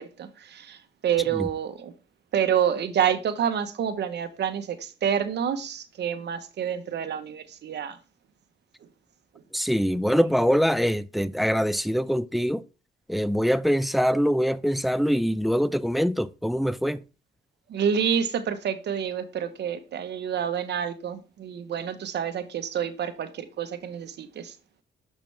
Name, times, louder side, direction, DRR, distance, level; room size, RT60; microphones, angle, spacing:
voice 1, 0.0-1.9 2.3-8.0 17.7-24.5, right 8 dB, 60° right, 1.0 m, -28 dB
voice 2, 9.5-12.6 13.1-17.0, equal, ahead, 0.4 m, -24 dB
6.7 x 6.0 x 3.4 m
cardioid pair, 90°, 20 cm